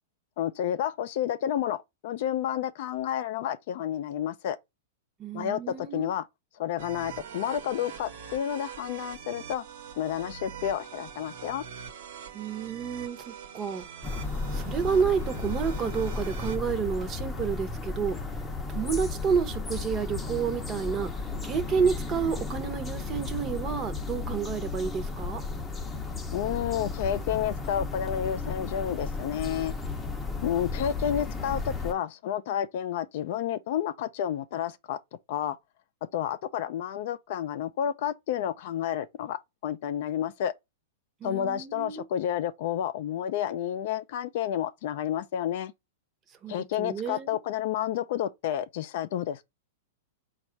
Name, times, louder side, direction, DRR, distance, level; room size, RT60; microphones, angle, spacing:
voice 1, 0.4-4.6 5.3-6.2 6.6-9.6 10.0-11.6 26.3-29.7 30.4-35.0 35.3-35.6 36.1-40.5 41.2-45.7 46.5-49.4, left 10 dB, 60° left, 0.4 m, -30 dB
voice 2, 5.2-6.1 12.3-13.8 14.5-18.2 18.7-21.1 21.4-25.4 41.2-42.0 46.4-47.4, right 6 dB, 25° right, 0.8 m, -30 dB
sound 1, 6.8-16.6, right 7 dB, 70° right, 1.1 m, -43 dB
sound 2, 14.0-31.9, left 4 dB, 10° left, 0.7 m, -34 dB
4.1 x 2.4 x 4.4 m
hypercardioid pair, 140°, 0 cm